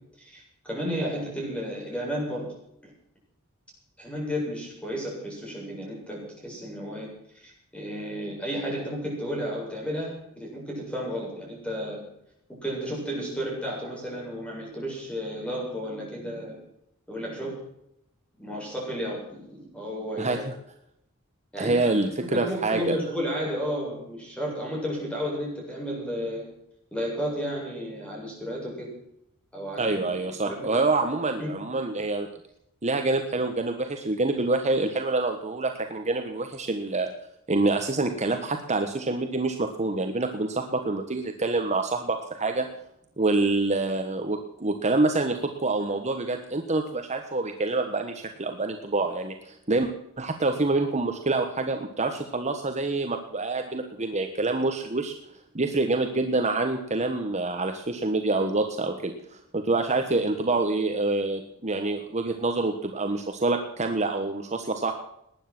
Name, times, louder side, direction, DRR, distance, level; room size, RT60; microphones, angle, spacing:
voice 1, 0.2-2.5 2.8-2.9 4.0-7.1 7.4-12.0 12.6-16.6 17.1-17.5 18.4-20.4 21.5-26.5 26.9-28.9 29.5-30.2 30.4-30.8 31.4-31.5, equal, 5° left, -2 dB, 7.4 m, -33 dB
voice 2, 20.2-20.5 21.6-23.0 29.8-32.3 32.8-37.1 37.5-42.7 43.2-49.9 50.2-55.1 55.5-64.9, right 2 dB, 30° right, 4 dB, 1.4 m, -26 dB
19.5 x 10.0 x 6.1 m, 0.77 s
head